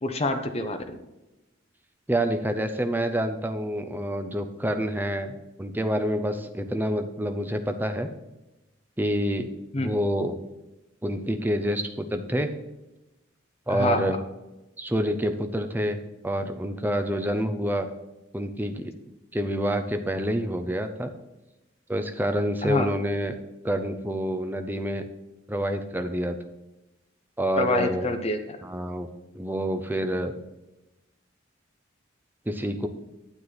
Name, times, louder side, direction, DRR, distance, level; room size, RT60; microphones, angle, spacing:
voice 1, 0.0-1.0 9.7-9.9 13.7-14.2 22.6-22.9 27.6-28.6, left 2 dB, 30° left, 6 dB, 0.8 m, -27 dB
voice 2, 2.1-8.1 9.0-9.5 9.8-10.4 11.0-12.5 13.7-14.2 14.8-16.0 16.2-17.9 18.3-18.9 19.3-21.1 21.9-23.3 23.6-25.1 25.5-26.4 27.4-28.1 28.6-29.1 29.3-30.3 32.5-32.9, equal, 10° right, 7 dB, 0.6 m, -27 dB
9.5 x 7.7 x 4.1 m, 1.0 s
head